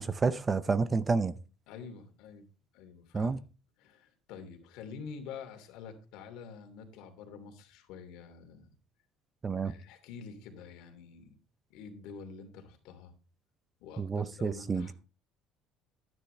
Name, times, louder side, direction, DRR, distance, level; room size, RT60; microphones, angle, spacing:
voice 1, 0.0-1.3 3.1-3.4 9.4-9.7 14.0-14.9, right 4 dB, 20° right, 0.5 m, -29 dB
voice 2, 1.7-2.4 2.7-3.4 3.8-8.7 9.6-11.3 11.7-13.1 13.8-14.9, left 6 dB, 75° left, 2.8 m, -47 dB
12.5 x 9.9 x 3.4 m
cardioid pair, 165°, 0 cm